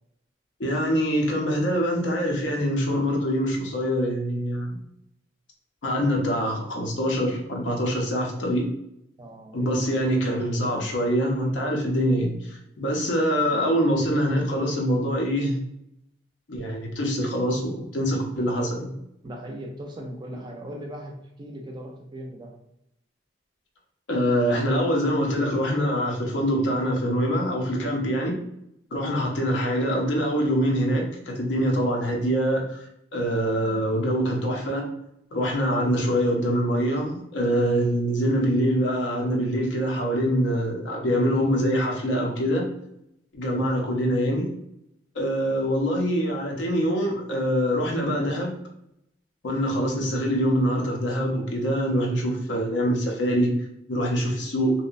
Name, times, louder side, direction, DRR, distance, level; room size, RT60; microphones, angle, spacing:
voice 1, 0.6-4.8 5.8-8.7 9.5-15.6 16.5-18.9 24.1-28.4 28.9-32.9 33.1-34.9 35.3-42.7 43.3-44.5 45.1-48.5 49.4-53.5 53.9-54.7, equal, 80° left, 0 dB, 0.6 m, -24 dB
voice 2, 9.2-9.8 12.8-13.0 19.2-22.6 29.2-29.4, equal, 25° right, 1 dB, 0.4 m, -39 dB
2.7 x 2.1 x 2.4 m, 0.80 s
head